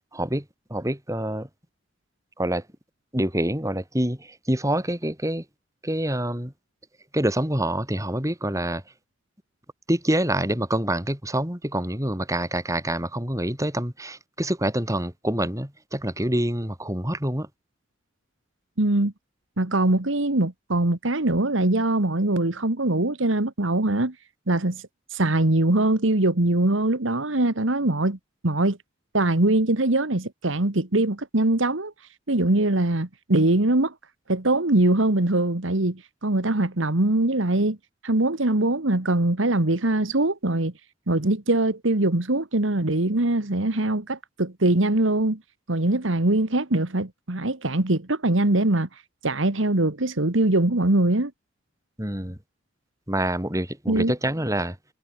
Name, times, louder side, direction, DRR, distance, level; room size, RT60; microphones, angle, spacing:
voice 1, 0.1-0.4 0.7-1.5 2.4-2.6 3.1-5.4 5.8-6.5 7.1-8.8 9.9-17.5 52.0-52.4 53.1-54.8, right 1 dB, 15° right, 6.1 m, -26 dB
voice 2, 18.8-19.1 19.6-24.1 24.5-24.8 25.1-28.2 28.4-28.8 29.1-31.9 32.3-33.9 34.3-37.8 38.0-40.7 41.1-45.4 45.7-48.9 49.2-51.3 53.9-54.1, right 2 dB, 85° right, 1.9 m, -22 dB
head